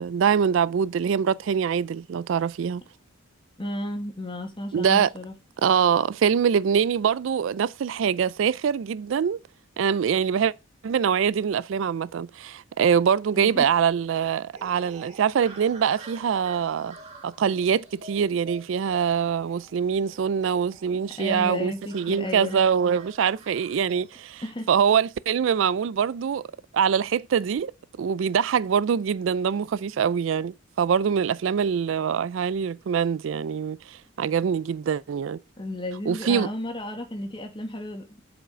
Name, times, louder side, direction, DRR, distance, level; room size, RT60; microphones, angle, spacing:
voice 1, 0.0-2.8 4.7-5.1 5.6-9.4 9.8-10.5 10.8-16.9 17.2-24.4 24.7-26.5 26.7-27.7 28.0-35.4 36.1-36.5, right 7 dB, 70° right, 0.3 m, -24 dB
voice 2, 3.6-5.3 13.3-13.7 21.2-22.6 24.4-24.7 35.6-38.2, left 1 dB, 25° left, 1.9 m, -33 dB
sound 1, 14.5-24.2, right 2 dB, 35° right, 2.4 m, -49 dB
8.0 x 5.0 x 5.0 m
head